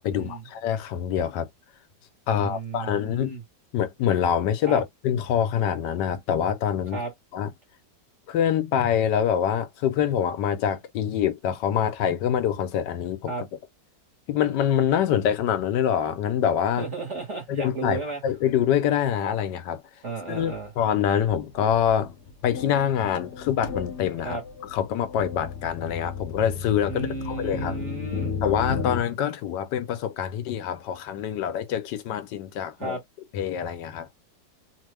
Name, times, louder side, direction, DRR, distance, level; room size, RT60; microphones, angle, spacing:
voice 1, 0.0-1.5 2.3-3.4 3.7-7.0 7.3-7.5 8.3-13.3 14.3-16.9 17.5-19.8 20.3-22.1 22.4-24.4 24.7-27.8 28.4-33.0 33.3-34.1, left 9 dB, 85° left, 1.3 m, -25 dB
voice 2, 2.3-3.4 4.6-4.8 6.9-7.1 13.3-13.5 16.8-18.2 20.0-20.7 24.2-24.4 26.9-28.4 32.8-33.0, right 3 dB, 50° right, 1.1 m, -33 dB
sound 1, 20.3-20.6 21.3-21.4 21.7-29.0, left 5 dB, 55° left, 0.9 m, -34 dB
3.1 x 2.1 x 3.3 m
omnidirectional pair, 1.9 m